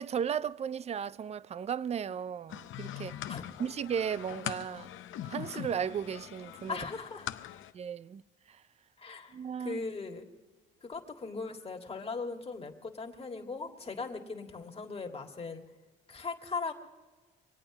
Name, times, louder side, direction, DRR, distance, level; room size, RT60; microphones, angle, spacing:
voice 1, 0.0-3.2 3.6-4.9 5.2-6.8 7.7-8.2 8.5-8.6 9.3-9.8, right 8 dB, 35° right, 0.4 m, -35 dB
sound 1, 2.5-7.7, left 12 dB, 75° left, 0.7 m, -42 dB
voice 2, 6.7-7.3 9.0-10.2 10.8-15.6 16.1-16.7, left 4 dB, 30° left, 1.7 m, -39 dB
24.0 x 8.8 x 6.0 m
cardioid pair, 90°, 20 cm